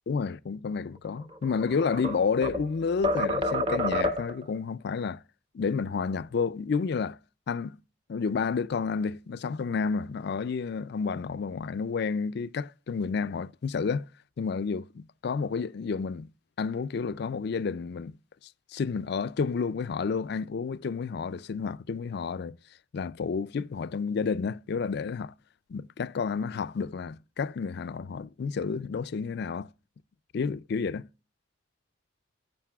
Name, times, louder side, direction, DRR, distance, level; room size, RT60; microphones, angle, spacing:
voice 1, 0.1-5.2 5.5-7.2 7.5-7.8 8.1-14.1 14.4-16.3 16.6-18.2 18.7-22.6 22.9-25.3 25.7-29.7 30.3-31.1, left 5 dB, 55° left, 0.4 m, -30 dB
sound 1, 1.3-2.7 3.0-4.5, left 1 dB, 25° right, 0.9 m, -28 dB
13.0 x 9.0 x 2.3 m
head